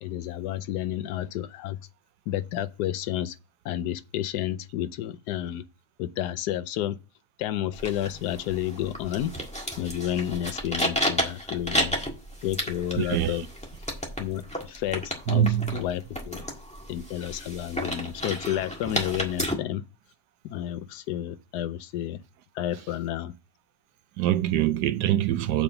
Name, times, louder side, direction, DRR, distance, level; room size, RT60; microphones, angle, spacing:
voice 1, 0.0-1.8 2.3-3.4 3.6-5.6 6.0-7.0 7.4-9.3 9.8-12.0 12.4-13.5 14.2-15.5 15.7-16.4 16.9-19.8 20.4-22.2 22.5-23.3, left 12 dB, 75° left, 1.1 m, -31 dB
sound 1, 7.7-19.5, equal, 5° left, 1.5 m, -32 dB
voice 2, 12.9-13.5 15.3-15.8 24.2-25.6, right 11 dB, 75° right, 1.2 m, -24 dB
7.1 x 4.8 x 6.8 m
omnidirectional pair, 1.8 m